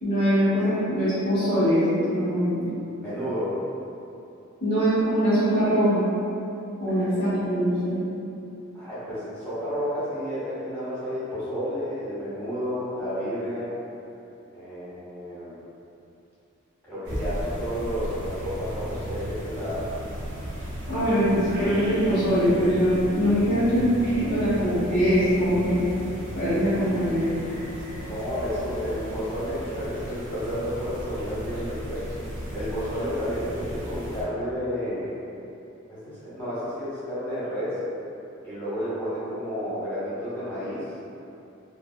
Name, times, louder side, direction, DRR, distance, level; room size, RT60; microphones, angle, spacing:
voice 1, 0.0-2.7 4.6-6.1 6.8-8.0 20.9-25.9 26.3-27.4, equal, 45° left, -15 dB, 1.1 m, -22 dB
voice 2, 3.0-3.5 6.8-7.2 8.7-13.7 14.5-15.6 16.9-19.9 28.0-32.0 32.5-35.1 35.9-37.8 38.4-40.8, equal, 10° left, -13 dB, 1.2 m, -31 dB
sound 1, 17.0-34.2, equal, 40° right, 0.8 m, -36 dB
3.3 x 2.2 x 2.2 m, 2.8 s
head